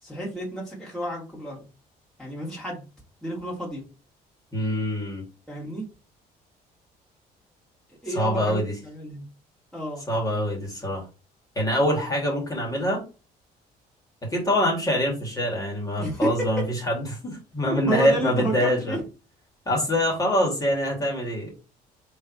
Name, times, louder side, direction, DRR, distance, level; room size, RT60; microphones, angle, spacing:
voice 1, 0.0-1.6 2.2-2.9 3.2-3.8 5.5-5.8 8.0-9.2 9.7-10.0 16.0-16.5 17.8-19.0, right 1 dB, ahead, -6 dB, 2.4 m, -31 dB
voice 2, 4.5-5.2 8.1-8.7 10.1-11.0 11.6-13.0 14.3-19.0 19.7-21.5, equal, 20° left, -2 dB, 2.6 m, -25 dB
3.8 x 3.3 x 4.1 m, 0.31 s
cardioid pair, 110°, 17 cm